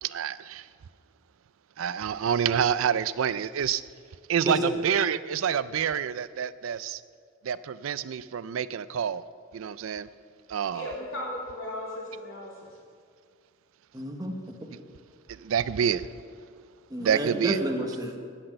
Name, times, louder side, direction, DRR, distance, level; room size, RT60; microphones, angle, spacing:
voice 1, 0.0-0.7 1.8-3.8 4.3-7.0 7.4-9.2 9.5-10.1 10.5-10.9 15.3-16.1 17.0-17.6, right 8 dB, 75° right, 16 dB, 0.4 m, -27 dB
voice 2, 10.7-12.8, left 1 dB, 70° left, -5 dB, 2.9 m, -36 dB
voice 3, 13.9-14.7 16.9-18.2, right 1 dB, 20° right, 2 dB, 1.1 m, -30 dB
16.5 x 6.0 x 6.6 m, 2.1 s
head